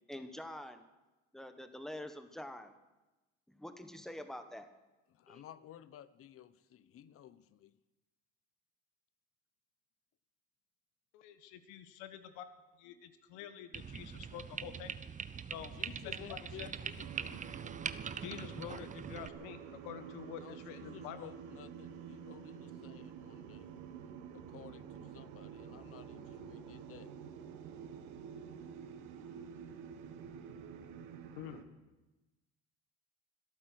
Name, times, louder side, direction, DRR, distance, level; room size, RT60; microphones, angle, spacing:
voice 1, 0.1-0.8 1.3-2.7 3.5-4.7 5.3-5.4, left 1 dB, ahead, 8 dB, 1.2 m, -46 dB
voice 2, 5.1-7.7 15.7-17.5 20.4-23.7 24.1-27.1, left 11 dB, 50° left, 16 dB, 0.9 m, -54 dB
voice 3, 11.1-12.4 12.8-15.0 15.5-15.7 16.0-16.7 18.2-21.3 31.3-31.6, left 10 dB, 85° left, 10 dB, 1.6 m, -47 dB
sound 1, 13.7-19.3, right 7 dB, 25° right, 0.7 m, -43 dB
sound 2, 17.0-31.6, right 7 dB, 85° right, 1.5 m, -49 dB
25.0 x 8.9 x 6.3 m, 1.1 s
cardioid pair, 115°, 30 cm